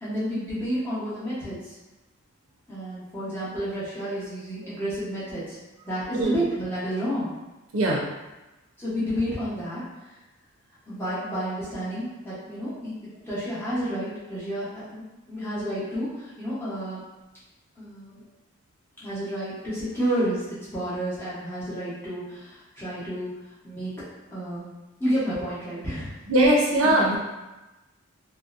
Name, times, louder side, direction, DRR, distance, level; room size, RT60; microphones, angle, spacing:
voice 1, 0.0-1.7 2.7-5.6 5.8-7.3 8.8-9.8 10.9-15.0 15.3-17.0 17.8-18.2 19.0-20.4 20.7-23.3 23.6-23.9 24.3-24.7 25.0-26.1 26.8-27.2, equal, 10° left, -11 dB, 0.8 m, -30 dB
voice 2, 26.3-27.1, right 1 dB, 75° right, -3 dB, 0.5 m, -20 dB
2.7 x 2.1 x 2.4 m, 1.1 s
head